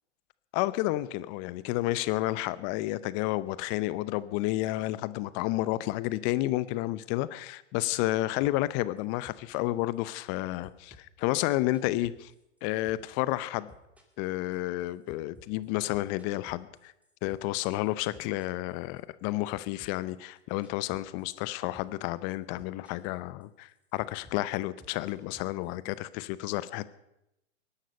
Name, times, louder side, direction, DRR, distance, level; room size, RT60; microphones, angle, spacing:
voice 1, 0.5-12.3 12.6-13.7 14.2-16.9 17.2-26.9, left 17 dB, 30° left, 17 dB, 0.7 m, -31 dB
sound 1, 8.4-8.7 9.0-10.4 10.6-12.6 12.9-13.2 13.4-17.6 17.9-19.3 19.5-21.5 21.7-22.0 22.3-23.2 23.4-26.0, equal, 5° right, 2.5 m, -55 dB
20.5 x 11.5 x 5.3 m, 0.85 s
hypercardioid pair, 115°, 37 cm